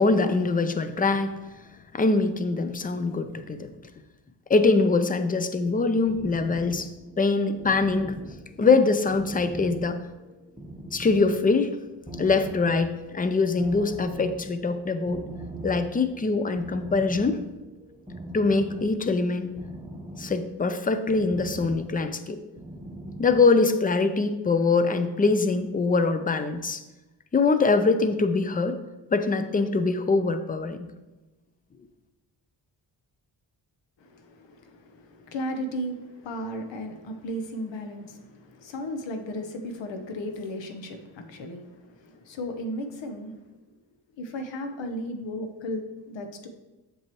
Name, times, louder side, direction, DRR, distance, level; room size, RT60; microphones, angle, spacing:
voice 1, 0.0-1.3 1.9-3.7 4.5-6.9 7.2-8.1 8.6-10.0 10.9-11.8 12.1-15.3 15.6-17.4 18.3-19.6 20.2-22.4 23.2-26.8 27.3-28.8 29.1-30.9, left 3 dB, 20° left, 10 dB, 0.5 m, -23 dB
sound 1, 6.0-23.5, right 1 dB, 10° right, 1.1 m, -41 dB
voice 2, 34.0-43.5 44.2-46.5, equal, 80° left, 6 dB, 1.0 m, -35 dB
7.4 x 6.8 x 3.0 m, 1.1 s
cardioid pair, 90°, 43 cm